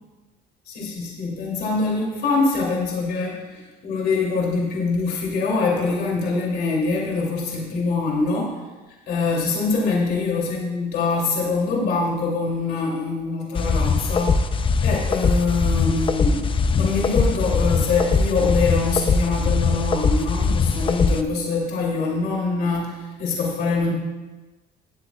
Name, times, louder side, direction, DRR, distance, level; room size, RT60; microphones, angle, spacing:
voice 1, 0.7-8.6 9.1-14.4 14.8-23.9, left 3 dB, 70° left, -3 dB, 2.9 m, -24 dB
sound 1, 13.6-21.2, left 4 dB, 30° left, 0.6 m, -21 dB
18.5 x 8.3 x 2.4 m, 1.2 s
cardioid pair, 110°, 17 cm